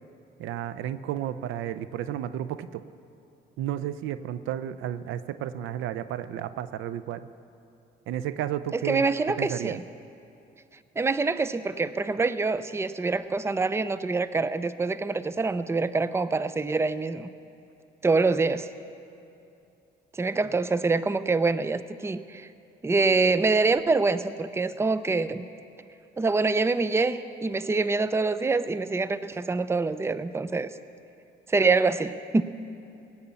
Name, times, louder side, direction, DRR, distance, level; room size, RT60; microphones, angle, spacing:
voice 1, 0.4-2.8 3.6-7.3 8.1-9.1 9.4-9.8, right 11 dB, 90° right, 13 dB, 0.5 m, -32 dB
voice 2, 8.7-9.8 11.0-17.3 18.0-18.7 20.1-22.5 22.8-25.5 26.2-30.7 31.5-32.4, right 3 dB, 15° right, 14 dB, 0.5 m, -25 dB
17.5 x 8.3 x 7.0 m, 2.7 s
cardioid pair, 90°, 20 cm